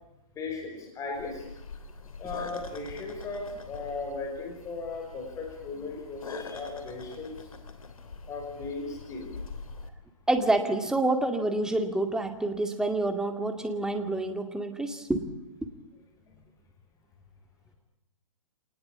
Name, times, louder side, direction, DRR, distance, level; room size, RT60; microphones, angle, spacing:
voice 1, 0.4-1.5 2.2-7.5 8.3-9.4, left 3 dB, 20° left, 2 dB, 5.5 m, -37 dB
sound 1, 1.1-9.9, left 4 dB, 90° left, 3.2 m, -44 dB
voice 2, 10.3-15.3 15.6-15.7, right 2 dB, 5° right, 6 dB, 2.1 m, -28 dB
26.5 x 19.5 x 8.6 m, 0.88 s
hypercardioid pair, 145°, 17 cm